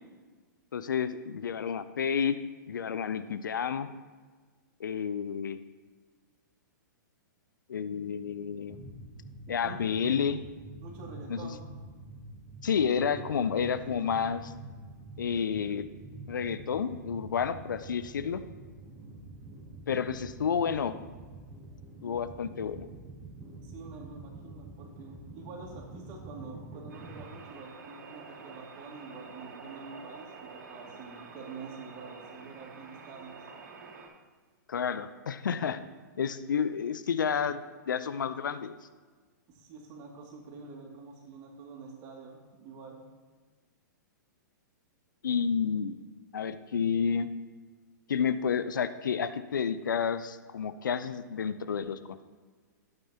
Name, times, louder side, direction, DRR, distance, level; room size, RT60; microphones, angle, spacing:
voice 1, 0.7-2.3 2.7-3.9 4.8-5.6 7.7-8.8 9.5-10.4 11.3-11.5 12.6-14.5 15.2-15.9 16.3-18.4 19.9-21.0 22.0-22.9 34.7-35.8 36.2-38.7 45.2-46.0 46.3-47.3 48.1-52.2, left 7 dB, 80° left, 13 dB, 0.6 m, -30 dB
sound 1, 8.7-27.3, right 2 dB, ahead, 2.0 m, -47 dB
voice 2, 9.5-9.8 10.8-11.6 13.8-14.0 23.6-33.4 35.6-35.8 39.5-43.0, right 4 dB, 35° right, -1 dB, 2.4 m, -47 dB
sound 2, 26.9-34.1, right 4 dB, 70° right, 2.5 m, -48 dB
11.5 x 9.0 x 2.9 m, 1.4 s
hypercardioid pair, 120°, 10 cm